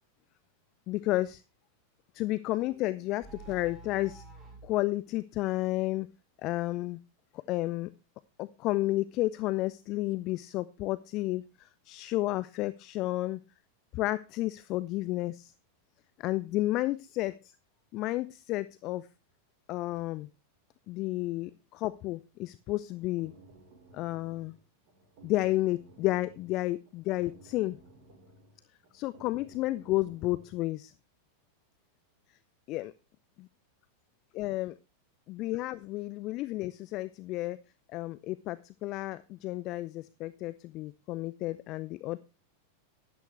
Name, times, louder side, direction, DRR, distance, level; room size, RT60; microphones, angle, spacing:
voice 1, 0.9-1.4 2.1-4.2 4.6-6.1 6.4-7.0 7.5-7.9 8.4-13.4 13.9-15.5 16.2-17.5 17.9-19.1 19.7-20.3 20.9-23.3 23.9-24.5 25.2-27.8 28.9-30.9 32.7-32.9 33.4-33.5 34.3-34.7 35.3-37.6 37.9-42.2, left 17 dB, 40° left, 17 dB, 0.5 m, -32 dB
sound 1, 2.6-4.7, right 3 dB, 20° right, 7.8 m, -49 dB
sound 2, 22.9-30.6, right 2 dB, 50° right, 5.7 m, -57 dB
12.5 x 11.5 x 3.3 m, 0.29 s
figure-of-eight pair, 90°, 0 cm